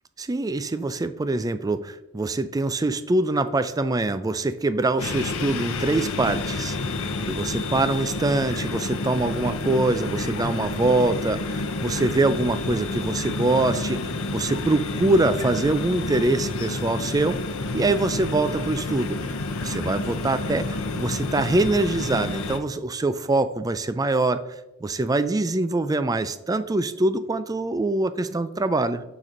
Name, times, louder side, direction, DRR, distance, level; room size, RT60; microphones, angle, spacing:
voice 1, 0.2-6.8 7.3-14.0 14.3-17.4 17.7-19.2 19.6-24.4 24.8-29.0, right 2 dB, 15° right, 12 dB, 0.4 m, -24 dB
sound 1, 5.0-22.6, left 3 dB, 70° left, 0.7 m, -29 dB
6.2 x 6.0 x 5.2 m, 0.95 s
head